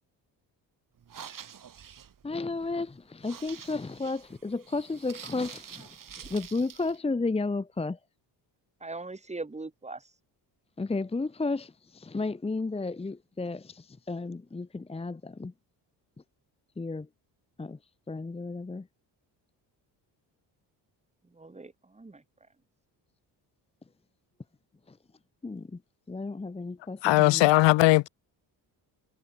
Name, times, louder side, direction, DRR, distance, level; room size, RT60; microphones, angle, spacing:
sound 1, 1.0-7.0, right 8 dB, 45° right, 5.4 m, -47 dB
voice 1, 2.2-8.0 10.8-15.5 16.8-17.1 17.6-17.8 18.1-18.9 24.9-25.0 25.4-25.8 26.1-27.5, left 3 dB, 15° left, 1.0 m, -33 dB
voice 2, 8.8-10.1 21.2-22.2, right 3 dB, 15° right, 3.7 m, -40 dB
voice 3, 27.0-28.1, left 20 dB, 80° left, 0.6 m, -19 dB
cardioid pair, 120°, 43 cm